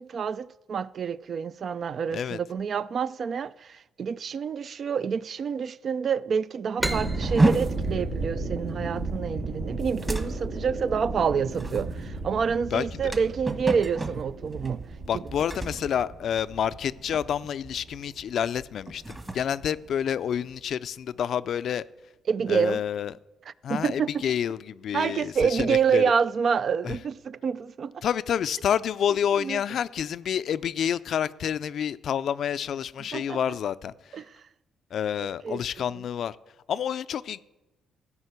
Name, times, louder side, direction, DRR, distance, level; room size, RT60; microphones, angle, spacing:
voice 1, 0.0-14.9 15.1-15.2 22.3-22.8 23.7-24.2 24.9-28.0 29.4-29.6 33.1-33.4 34.1-34.2 35.4-35.6, right 6 dB, 50° right, 0.3 m, -27 dB
sound 1, 6.8-10.2, right 1 dB, 5° right, 0.7 m, -36 dB
sound 2, 6.8-19.4 19.7-20.0, right 2 dB, 70° right, 1.8 m, -35 dB
sound 3, 7.2-16.8 17.1-17.5 17.9-18.1 18.7-20.6, right 2 dB, 25° right, 1.4 m, -31 dB
voice 2, 12.7-13.1 15.1-21.8 22.5-23.1 23.6-26.1 26.8-27.0 28.0-34.2 34.9-36.4 36.7-37.4, left 9 dB, 65° left, 0.4 m, -29 dB
14.5 x 5.6 x 8.1 m
cardioid pair, 90°, 0 cm